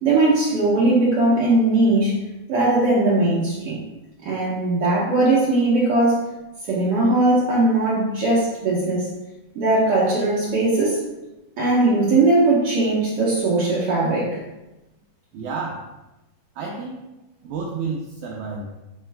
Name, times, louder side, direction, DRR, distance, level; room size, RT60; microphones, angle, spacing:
voice 1, 0.0-2.2 2.5-3.8 4.2-6.2 6.7-9.1 9.5-11.0 11.6-14.4, right 2 dB, 70° right, -7 dB, 1.4 m, -19 dB
voice 2, 15.3-15.9 16.6-17.0 17.4-18.7, right 4 dB, 90° right, -1 dB, 1.7 m, -30 dB
9.7 x 4.5 x 2.3 m, 0.99 s
omnidirectional pair, 4.2 m